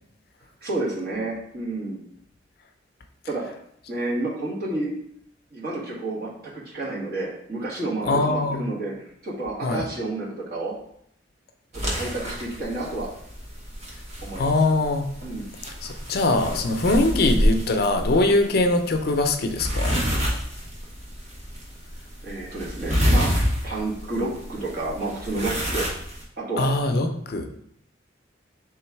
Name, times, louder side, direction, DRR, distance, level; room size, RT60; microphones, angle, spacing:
voice 1, 0.6-2.0 3.3-3.4 3.9-4.9 5.5-10.7 11.7-13.1 14.2-14.5 15.2-15.5 22.2-23.3 23.6-25.9 26.4-26.7, right 2 dB, 50° right, -4 dB, 1.3 m, -30 dB
voice 2, 8.0-8.6 9.6-9.8 14.4-15.1 15.8-20.0 26.6-27.5, left 2 dB, 55° left, 5 dB, 0.5 m, -22 dB
sound 1, 11.7-26.2, equal, 35° right, 1.0 m, -28 dB
3.6 x 3.0 x 4.5 m, 0.70 s
head